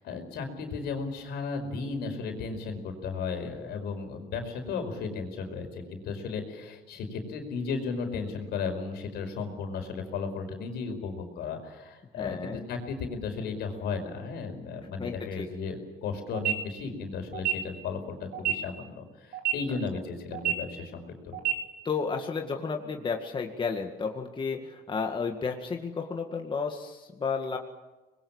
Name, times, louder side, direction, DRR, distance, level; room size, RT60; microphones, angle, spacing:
voice 1, 0.0-21.4, left 5 dB, 75° left, 5 dB, 5.2 m, -35 dB
voice 2, 12.2-12.7 15.0-15.5 21.8-27.6, left 5 dB, 30° left, 3 dB, 2.1 m, -32 dB
sound 1, 16.3-16.5 17.3-17.5 18.3-18.5 19.3-19.5 20.3-20.5 21.3-21.5, right 13 dB, 65° right, 4.7 m, -27 dB
25.5 x 21.5 x 7.3 m, 1.1 s
cardioid pair, 110°, 17 cm